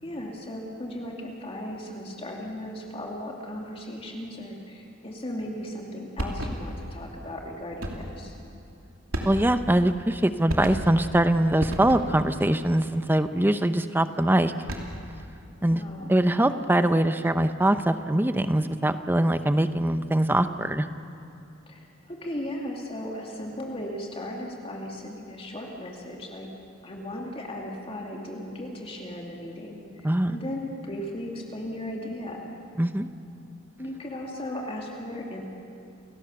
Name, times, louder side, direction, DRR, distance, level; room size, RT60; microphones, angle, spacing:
voice 1, 0.0-8.4 15.7-16.1 21.7-26.5 26.8-32.5 33.8-35.4, left 1 dB, 25° left, -1 dB, 2.5 m, -36 dB
sound 1, 6.2-6.8 7.8-8.2 9.1-9.7 10.5-11.1 11.6-12.3 14.5-15.1, equal, 75° right, 2.9 m, -32 dB
voice 2, 9.2-14.5 15.6-15.8 16.1-20.9 30.0-30.4 32.8-33.1, right 1 dB, 10° right, 10 dB, 0.7 m, -23 dB
29.5 x 18.0 x 7.0 m, 2.7 s
head